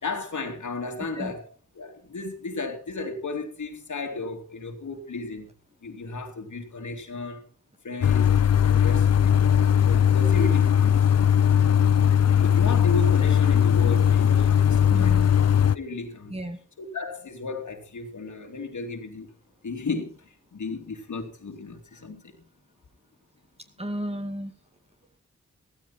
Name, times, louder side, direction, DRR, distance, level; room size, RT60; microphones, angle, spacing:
voice 1, 0.0-1.5 1.7-5.5 5.8-7.4 7.8-9.4 9.8-11.0 12.4-15.2 15.7-16.3 16.9-19.3 19.6-22.3, left 3 dB, 75° left, 2.9 m, -34 dB
sound 1, 8.0-15.8, left 9 dB, 55° left, 0.6 m, -19 dB
voice 2, 14.9-15.3 16.3-16.6 23.8-24.5, right 1 dB, 20° right, 2.4 m, -33 dB
15.5 x 14.0 x 4.4 m
wide cardioid pair, 75°, 30 cm